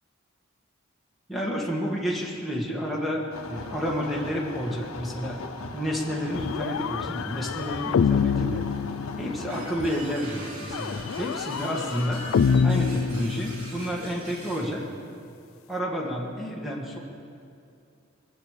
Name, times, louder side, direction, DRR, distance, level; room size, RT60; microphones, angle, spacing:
voice 1, 1.3-5.4 5.7-8.6 9.2-12.2 12.6-14.8 15.7-17.0, equal, ahead, -4 dB, 1.8 m, -30 dB
sound 1, 3.3-10.2, left 3 dB, 85° left, 1.0 m, -39 dB
sound 2, 6.3-9.6 10.7-14.0, left 6 dB, 70° left, 0.3 m, -26 dB
sound 3, 9.5-14.7, right 1 dB, 85° right, 3.2 m, -42 dB
21.0 x 8.1 x 6.8 m, 2.5 s
head